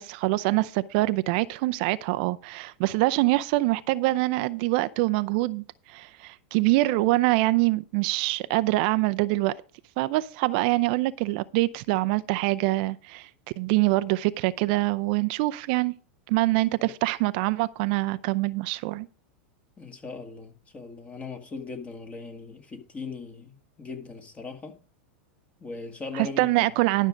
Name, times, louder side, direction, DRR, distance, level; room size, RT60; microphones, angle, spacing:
voice 1, 0.0-9.5 10.0-13.3 13.6-15.9 16.3-19.1 26.1-27.1, right 19 dB, 55° right, 0.5 m, -25 dB
voice 2, 19.8-24.8 25.6-26.6, left 4 dB, 20° left, 2.0 m, -39 dB
12.0 x 6.3 x 5.1 m
hypercardioid pair, 110°, 6 cm